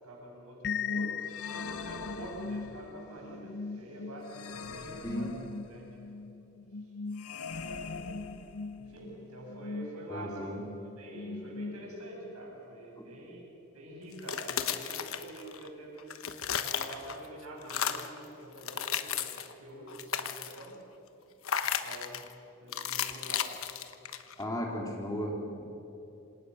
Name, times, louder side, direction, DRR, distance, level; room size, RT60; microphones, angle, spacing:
voice 1, 0.0-5.9 7.5-8.1 8.8-16.2 16.6-20.8 21.6-22.2 22.6-23.8 24.1-24.4, right 1 dB, 85° right, -2 dB, 7.3 m, -46 dB
sound 1, 0.6-12.3, left 5 dB, 50° left, 0.6 m, -40 dB
sound 2, 1.3-3.0 4.3-5.9 7.1-9.0, left 5 dB, 90° left, 1.3 m, -43 dB
voice 2, 10.1-10.6 13.0-13.1 24.4-25.6, equal, 15° left, -1 dB, 3.5 m, -35 dB
sound 3, 14.1-15.7 16.0-17.3 17.6-18.2 18.6-19.5 19.9-20.7 21.4-22.3 22.7-24.4, left 8 dB, 70° left, 1.2 m, -34 dB
27.5 x 26.5 x 6.5 m, 2.9 s
head